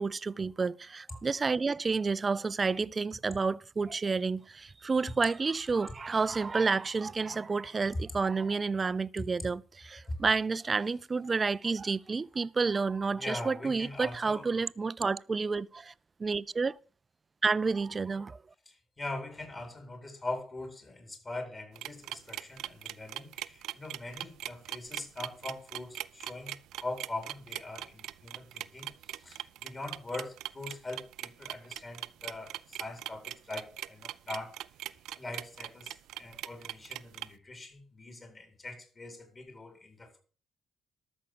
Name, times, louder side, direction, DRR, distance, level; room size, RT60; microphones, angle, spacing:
voice 1, 0.0-15.9 16.2-16.8 17.4-18.4, right 4 dB, 30° right, 0.5 m, -30 dB
voice 2, 13.1-14.5 18.7-34.5 34.9-40.2, left 2 dB, 35° left, 4.2 m, -42 dB
sound 1, 21.8-37.3, right 13 dB, 85° right, 0.5 m, -40 dB
13.0 x 6.4 x 6.9 m
cardioid pair, 90°, 0 cm